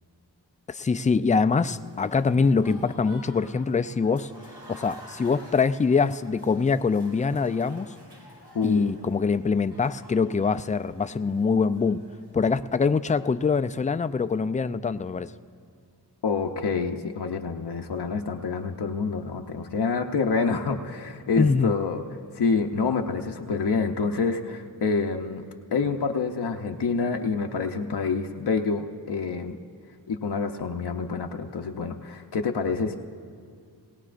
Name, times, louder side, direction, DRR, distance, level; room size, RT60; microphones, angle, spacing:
voice 1, 0.7-4.3 4.7-7.9 8.6-12.0 12.3-15.3 21.4-21.7, left 5 dB, 20° left, 11 dB, 0.3 m, -24 dB
Applause / Crowd, 1.8-12.7, equal, 65° right, 4.4 m, -50 dB
voice 2, 8.5-8.9 16.2-22.0 22.3-25.4 25.7-29.6 30.1-33.0, left 4 dB, 65° left, 3 dB, 0.7 m, -27 dB
20.0 x 17.5 x 2.5 m, 2.1 s
cardioid pair, 45°, 42 cm